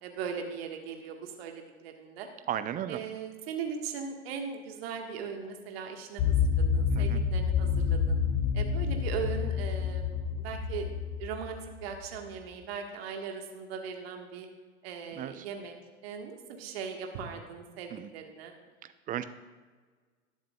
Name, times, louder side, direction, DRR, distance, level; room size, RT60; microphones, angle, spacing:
voice 1, 0.0-2.3 2.9-8.2 8.5-10.9 11.2-14.5 14.8-15.7 16.0-18.5, right 6 dB, 55° right, 3 dB, 1.6 m, -39 dB
voice 2, 2.5-3.0 6.9-7.2 15.2-15.4 17.9-18.1 18.8-19.2, right 10 dB, 25° right, 12 dB, 0.5 m, -35 dB
sound 1, 6.2-12.0, left 6 dB, 40° left, 1.1 m, -28 dB
19.0 x 7.4 x 2.4 m, 1.4 s
figure-of-eight pair, 85°, 35 cm